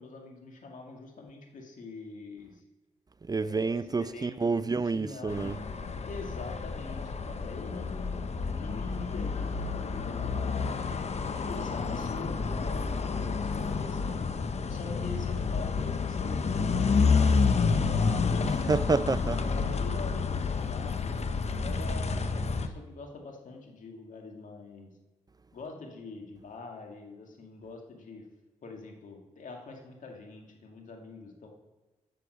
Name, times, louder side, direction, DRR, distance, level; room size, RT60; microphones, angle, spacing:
voice 1, 0.0-2.6 3.4-5.5 6.1-10.8 11.2-18.8 19.4-24.9 25.5-28.2 28.6-31.5, left 3 dB, 65° left, 2.1 m, -44 dB
voice 2, 3.2-5.6 18.4-19.4, right 4 dB, 30° right, 0.4 m, -29 dB
sound 1, 5.3-22.7, left 5 dB, 50° left, 0.9 m, -29 dB
8.1 x 6.9 x 6.5 m
supercardioid pair, 45°, 14 cm